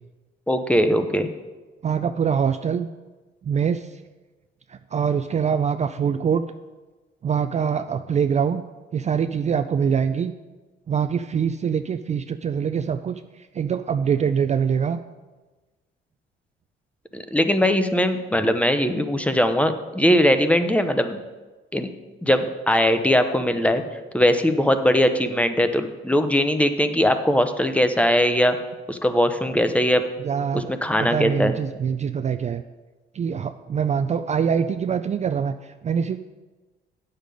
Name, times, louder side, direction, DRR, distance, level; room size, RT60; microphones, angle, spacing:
voice 1, 0.5-1.3 17.1-21.2 21.7-21.9 22.2-23.8 24.1-28.6 28.9-30.0 30.5-31.5, equal, 5° left, 8 dB, 0.7 m, -20 dB
voice 2, 1.8-2.9 3.4-4.0 4.7-6.4 7.2-8.6 8.9-10.3 10.9-13.2 13.5-15.0 30.2-30.7 31.0-32.6 33.1-36.2, right 7 dB, 35° right, 8 dB, 0.4 m, -24 dB
8.9 x 6.7 x 5.2 m, 1.2 s
cardioid pair, 90°, 20 cm